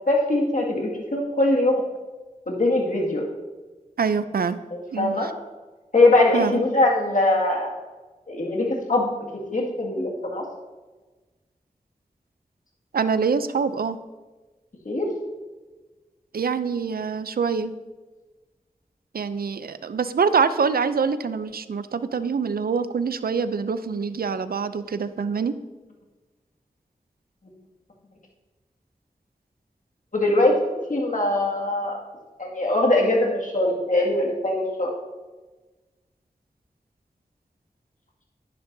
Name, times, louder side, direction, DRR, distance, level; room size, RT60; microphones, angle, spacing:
voice 1, 0.1-1.8 2.5-3.2 4.7-5.3 5.9-7.7 8.3-9.1 9.5-10.4 14.9-15.1 30.1-32.0 32.4-35.0, left 2 dB, 60° left, -2 dB, 2.0 m, -22 dB
voice 2, 4.0-4.6 4.9-5.2 6.3-6.5 12.9-14.0 16.3-17.8 19.1-25.5, right 5 dB, 90° right, 12 dB, 0.5 m, -25 dB
11.0 x 10.0 x 2.7 m, 1.2 s
wide cardioid pair, 45°, 15 cm